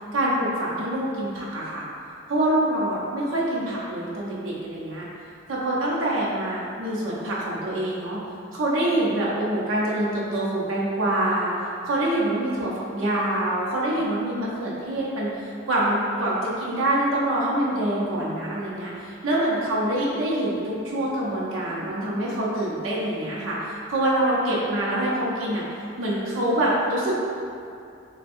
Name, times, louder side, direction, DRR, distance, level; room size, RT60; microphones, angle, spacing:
voice 1, 0.1-1.9 2.3-5.0 5.5-8.2 8.5-11.5 11.9-25.6 26.0-27.2, right 1 dB, 85° right, -6 dB, 0.7 m, -25 dB
3.4 x 2.2 x 4.2 m, 2.5 s
head